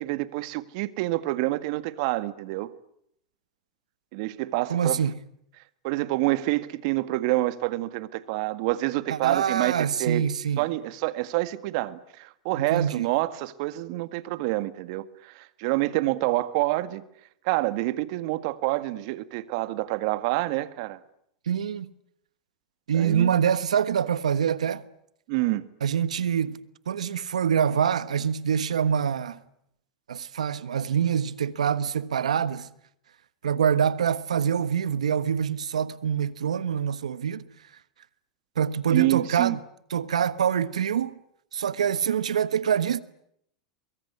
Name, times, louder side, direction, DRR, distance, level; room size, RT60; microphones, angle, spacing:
voice 1, 0.0-2.7 4.1-5.0 5.8-9.7 10.0-10.2 10.6-17.0 17.4-21.0 22.9-23.3 25.3-25.7 38.9-39.6, right 18 dB, 60° right, 1.8 m, -27 dB
voice 2, 4.7-5.1 9.1-10.7 12.5-13.1 21.5-21.9 22.9-24.8 25.8-26.6 26.9-29.4 30.1-32.7 33.4-37.5 38.6-39.6 39.9-41.2 41.5-43.0, right 8 dB, 90° right, 1.3 m, -25 dB
23.5 x 23.0 x 9.7 m
hypercardioid pair, 105°, 4 cm